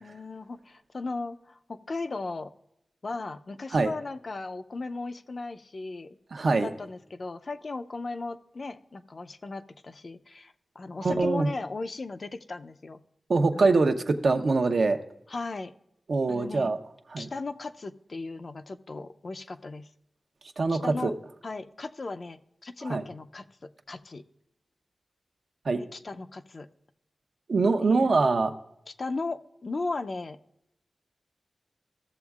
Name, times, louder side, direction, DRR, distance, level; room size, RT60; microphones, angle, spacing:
voice 1, 0.0-2.5 3.0-6.2 6.4-13.0 13.5-13.9 15.3-15.7 16.3-16.7 17.2-19.9 20.7-21.1 21.4-24.2 25.9-26.7 27.8-28.1 28.9-30.4, left 3 dB, 50° left, 9 dB, 0.5 m, -37 dB
voice 2, 6.3-6.7 11.0-11.5 13.3-15.0 16.1-16.8 17.1-17.3 20.6-21.1 22.9-23.0 25.6-25.8 27.5-28.5, right 3 dB, 65° right, 7 dB, 0.7 m, -23 dB
15.0 x 7.1 x 2.4 m, 0.83 s
wide cardioid pair, 95°, 0 cm